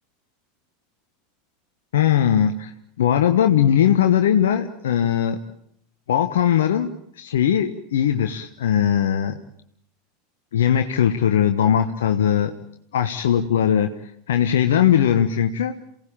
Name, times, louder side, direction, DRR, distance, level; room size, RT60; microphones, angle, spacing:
voice 1, 1.9-2.7 3.0-5.4 6.1-9.4 10.5-12.5 12.9-13.9 14.3-15.7, left 9 dB, 70° left, 6 dB, 1.2 m, -19 dB
28.0 x 17.5 x 8.8 m, 0.71 s
figure-of-eight pair, 85°, 0 cm